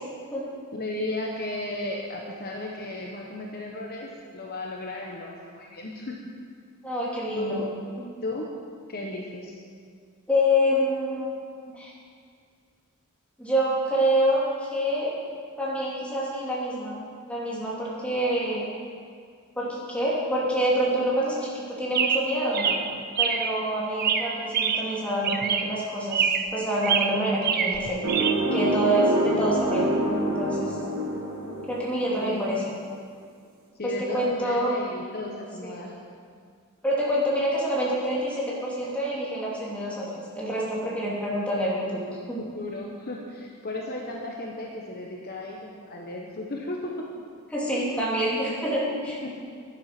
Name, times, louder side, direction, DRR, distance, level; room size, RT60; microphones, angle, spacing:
voice 1, 0.7-6.2 7.4-7.7 8.2-8.5 8.9-9.6 32.2-32.5 33.8-35.9 41.9-42.0 42.4-47.1 49.2-49.3, left 2 dB, 45° left, -1 dB, 1.2 m, -35 dB
voice 2, 6.8-7.6 10.3-11.4 11.7-11.9 13.4-15.1 15.6-17.0 17.3-18.6 19.5-22.8 23.2-28.0 28.5-29.9 30.2-30.8 31.7-32.6 33.8-34.7 36.8-42.0 42.3-42.4 47.5-49.3, equal, 5° left, -7 dB, 3.0 m, -27 dB
Chirp tweet, 21.9-23.6 24.0-25.0 25.2-25.8 26.1-26.6 26.8-28.3, right 7 dB, 45° right, 0.6 m, -25 dB
sound 1, 28.0-32.4, right 1 dB, 70° right, 1.7 m, -26 dB
10.5 x 10.5 x 6.0 m, 2.1 s
head